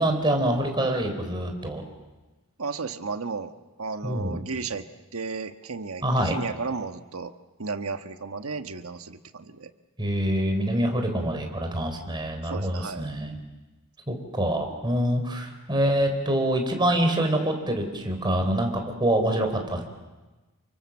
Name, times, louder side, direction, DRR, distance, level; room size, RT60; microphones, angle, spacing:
voice 1, 0.0-1.8 4.0-4.4 6.0-6.4 10.0-13.3 14.1-19.8, right 1 dB, 20° right, 4 dB, 4.1 m, -25 dB
voice 2, 2.6-3.5 3.8-4.9 5.1-7.3 7.6-9.7 12.5-13.1, right 4 dB, 80° right, 7 dB, 1.4 m, -33 dB
29.0 x 23.5 x 7.3 m, 1.2 s
head